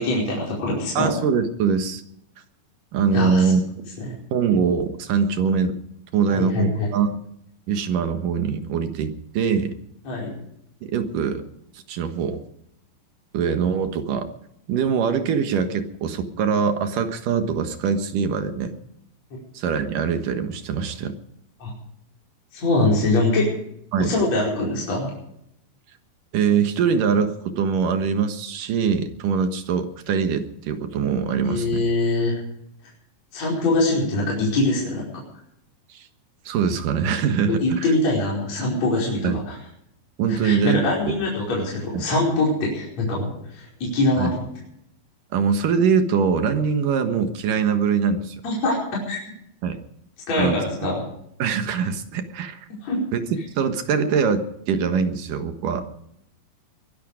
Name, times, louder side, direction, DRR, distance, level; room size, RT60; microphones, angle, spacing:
voice 1, 0.0-1.1 3.1-3.5 4.0-4.1 6.3-6.9 10.1-10.3 21.6-21.7 22.5-23.5 24.0-25.1 31.4-32.4 33.3-35.2 37.5-39.6 40.3-44.5 48.4-49.2 50.3-51.1 52.8-53.0, left 2 dB, 45° left, -4 dB, 6.1 m, -23 dB
voice 2, 1.0-2.0 2.9-3.9 4.3-5.8 6.1-7.1 7.7-9.7 10.9-11.4 11.9-12.4 13.3-14.3 14.7-18.7 19.5-21.2 23.9-24.2 26.3-31.9 35.9-36.1 36.5-37.9 39.2-39.4 40.2-41.1 41.9-42.0 44.2-44.3 45.3-48.4 49.6-49.8 50.4-50.6 51.4-52.6 53.1-55.8, right 6 dB, 65° right, 8 dB, 2.9 m, -23 dB
22.5 x 11.5 x 5.1 m, 0.74 s
omnidirectional pair, 4.2 m